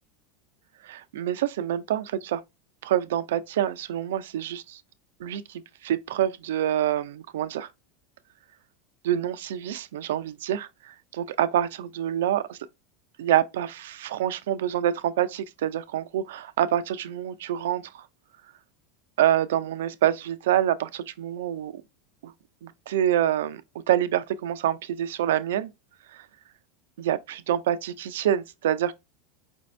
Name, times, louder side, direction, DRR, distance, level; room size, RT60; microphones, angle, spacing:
voice 1, 0.8-2.4 2.8-4.8 5.2-7.7 9.0-10.7 11.2-12.6 13.2-18.1 19.2-21.8 22.2-22.3 22.6-23.6 23.9-25.7 26.1-26.3 27.0-28.9, right 11 dB, 85° right, 0.4 m, -26 dB
5.1 x 2.6 x 3.2 m
supercardioid pair, 115°, 0 cm